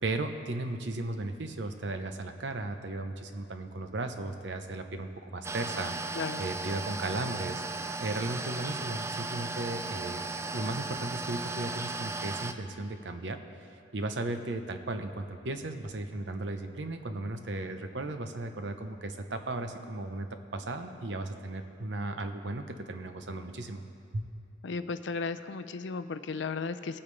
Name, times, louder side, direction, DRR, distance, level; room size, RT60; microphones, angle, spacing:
voice 1, 0.0-10.2 10.5-13.4 13.9-20.3 20.5-23.8 24.1-24.2, right 2 dB, 75° right, 7 dB, 0.8 m, -36 dB
sound 1, 5.4-12.5, right 3 dB, 15° right, 0.4 m, -36 dB
voice 2, 24.6-27.0, left 4 dB, 80° left, 11 dB, 0.5 m, -35 dB
19.0 x 8.7 x 3.3 m, 2.6 s
head